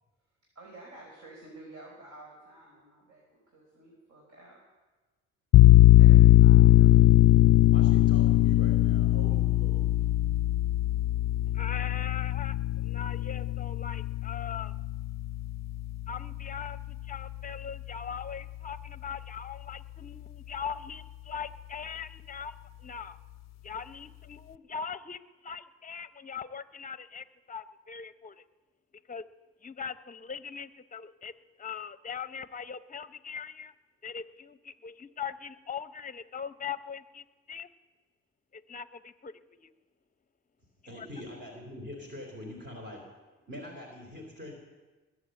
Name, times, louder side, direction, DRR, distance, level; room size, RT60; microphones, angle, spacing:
voice 1, 0.6-4.6 5.9-7.5, right 2 dB, 60° right, -2 dB, 4.7 m, -51 dB
sound 1, 5.5-16.8, left 15 dB, 60° left, 0.5 m, -21 dB
voice 2, 7.6-10.0 40.9-43.0 43.5-44.5, left 1 dB, 35° right, 1 dB, 3.3 m, -44 dB
voice 3, 11.5-12.6 12.8-14.7 16.1-22.5 22.8-23.2 23.6-28.4 29.1-29.2 29.6-31.3 31.6-33.7 34.0-37.7 38.5-39.7 40.8-41.1, left 6 dB, 25° left, 13 dB, 0.7 m, -41 dB
20.5 x 7.8 x 7.8 m, 1.2 s
cardioid pair, 90°, 30 cm